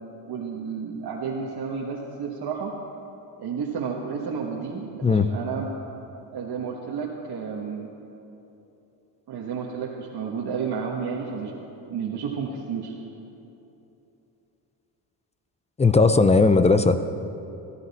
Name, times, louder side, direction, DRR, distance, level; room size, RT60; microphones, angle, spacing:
voice 1, 0.2-2.7 3.4-5.7 6.3-7.9 9.3-11.6 11.9-12.9, right 6 dB, 50° right, -2 dB, 1.3 m, -31 dB
voice 2, 15.8-17.1, left 3 dB, 15° left, 11 dB, 0.4 m, -18 dB
17.5 x 12.5 x 4.2 m, 3.0 s
cardioid pair, 110°, 48 cm